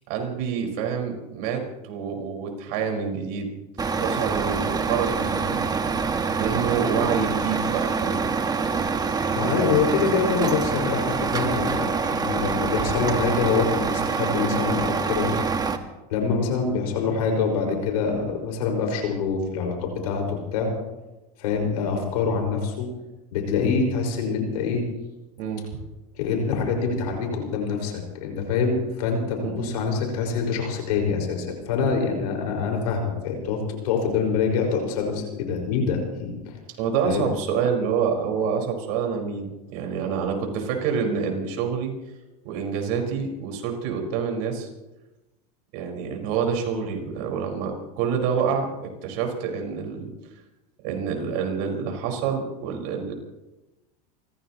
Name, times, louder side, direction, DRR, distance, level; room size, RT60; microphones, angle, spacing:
voice 1, 0.1-3.5 4.0-5.7 6.4-8.3 25.4-25.6 29.4-29.8 36.8-41.9 42.4-44.7 45.7-48.7 49.0-50.1 50.8-53.1, right 6 dB, 65° right, 2 dB, 4.9 m, -27 dB
Truck, 3.8-15.8, right 5 dB, 20° right, 1.4 m, -25 dB
voice 2, 9.3-15.3 16.1-20.7 21.4-22.9 23.3-24.8 26.1-36.6 37.0-37.2, left 5 dB, 80° left, 2 dB, 5.3 m, -25 dB
29.0 x 15.5 x 3.0 m, 1.0 s
supercardioid pair, 110°, 20 cm